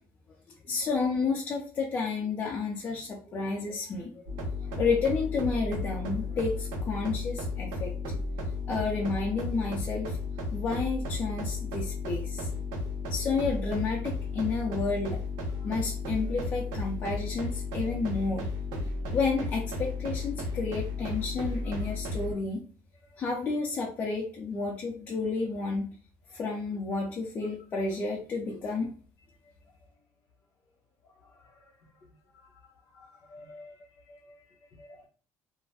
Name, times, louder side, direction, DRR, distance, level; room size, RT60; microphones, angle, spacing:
voice 1, 0.7-4.1 4.6-7.9 8.7-10.2 10.5-12.6 13.1-15.2 15.6-18.5 19.1-22.6 23.2-25.9 26.3-28.9, left 4 dB, 30° left, -3 dB, 0.5 m, -31 dB
sound 1, 4.3-22.3, left 3 dB, 90° right, 1.0 m, -34 dB
voice 2, 15.5-15.9 17.8-18.0 31.0-31.6 32.3-35.1, left 2 dB, 50° left, 1 dB, 1.0 m, -53 dB
2.4 x 2.1 x 3.3 m, 0.41 s
cardioid pair, 170°, 7 cm